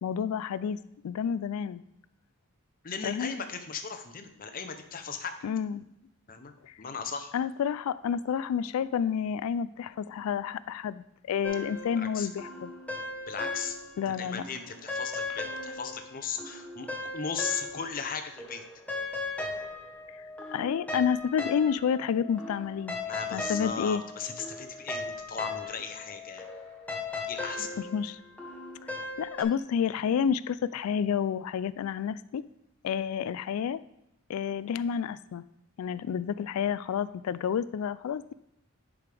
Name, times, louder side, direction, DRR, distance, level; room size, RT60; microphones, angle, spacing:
voice 1, 0.0-0.8 1.0-1.8 3.0-3.3 5.4-5.8 6.6-6.7 7.3-12.7 14.0-14.4 20.2-20.3 20.5-23.0 23.3-24.0 27.9-28.2 28.8-28.9 29.2-32.4 32.8-33.8 34.3-35.4 35.8-38.3, left 7 dB, 75° left, 17 dB, 0.3 m, -30 dB
voice 2, 2.8-5.3 6.3-6.5 6.8-7.3 12.0-12.3 13.3-13.8 14.2-16.9 17.1-18.6 23.1-26.5 27.3-27.8, left 6 dB, 40° left, 7 dB, 0.7 m, -37 dB
sound 1, 11.4-14.1 14.4-18.1 18.4-29.4, left 3 dB, 5° left, 1.0 m, -38 dB
10.5 x 4.9 x 3.4 m, 0.82 s
head